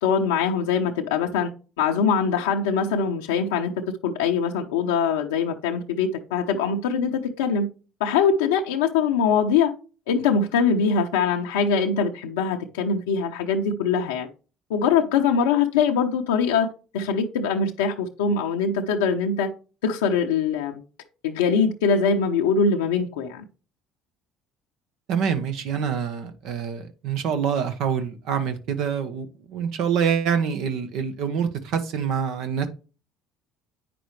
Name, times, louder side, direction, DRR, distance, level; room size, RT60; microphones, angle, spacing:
voice 1, 0.0-1.5 1.8-3.7 4.0-7.7 8.0-9.7 10.1-14.3 14.7-16.7 16.9-19.5 19.8-20.8 21.2-23.4, left 6 dB, 90° left, 0.6 m, -22 dB
voice 2, 25.1-32.7, right 7 dB, 70° right, 0.9 m, -26 dB
8.4 x 5.9 x 3.2 m
hypercardioid pair, 75°, 0 cm